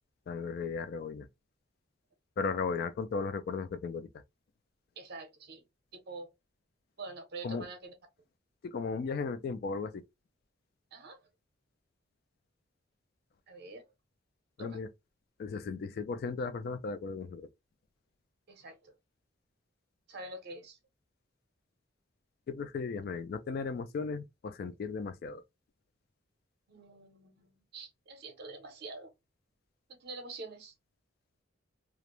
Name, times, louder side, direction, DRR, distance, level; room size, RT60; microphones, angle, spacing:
voice 1, 0.3-1.3 2.4-4.1 7.4-7.7 8.6-10.0 14.6-14.9 15.4-17.5 22.5-25.4, left 4 dB, 55° left, 0.3 m, -36 dB
voice 2, 5.0-5.6 5.9-6.3 7.0-7.9 10.9-11.2 13.5-13.8 14.6-14.8 18.5-19.0 20.1-20.8 26.7-29.1 30.0-30.7, right 3 dB, 60° right, 0.6 m, -46 dB
2.4 x 2.0 x 2.9 m
head